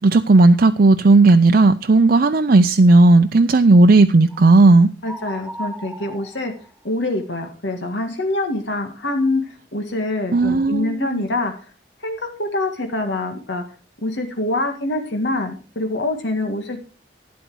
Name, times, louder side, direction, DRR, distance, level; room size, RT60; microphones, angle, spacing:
voice 1, 0.0-4.9 10.3-11.2, right 2 dB, 55° right, 0.5 m, -13 dB
sound 1, 4.3-4.6 5.0-7.1, right 1 dB, 5° right, 2.3 m, -36 dB
voice 2, 5.0-6.5 6.8-9.4 9.7-11.5 12.0-13.6 14.0-16.8, left 2 dB, 80° left, 1.8 m, -25 dB
12.0 x 9.4 x 4.7 m
head